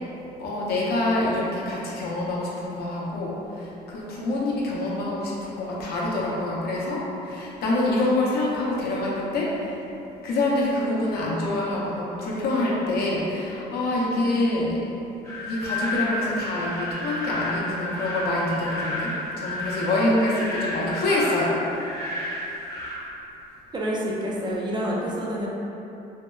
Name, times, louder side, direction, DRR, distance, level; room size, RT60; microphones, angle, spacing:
voice 1, 0.4-9.8 10.2-14.8 15.4-21.9, left 2 dB, 65° left, -5 dB, 0.6 m, -26 dB
sound 1, 15.2-22.9, left 1 dB, 20° left, 0.6 m, -31 dB
voice 2, 23.7-25.5, equal, 25° right, -4 dB, 0.4 m, -28 dB
2.7 x 2.2 x 2.2 m, 2.9 s
cardioid pair, 110°, 17 cm